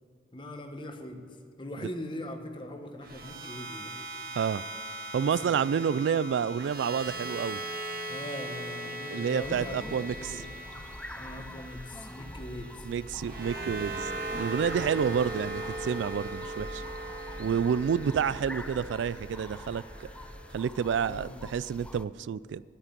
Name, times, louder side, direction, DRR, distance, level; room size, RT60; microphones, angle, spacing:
voice 1, 0.3-4.0 5.2-5.8 8.1-10.5 11.2-12.9 21.1-21.6, left 1 dB, 25° left, 5 dB, 1.1 m, -41 dB
sound 1, 3.0-21.2, right 1 dB, 50° right, 1.8 m, -40 dB
voice 2, 5.1-7.6 9.1-10.3 12.9-16.8 17.4-20.1 20.5-22.6, right 7 dB, 85° right, 18 dB, 0.3 m, -29 dB
sound 2, 9.4-22.1, left 1 dB, 5° left, 0.3 m, -44 dB
10.0 x 8.7 x 9.7 m, 2.4 s
head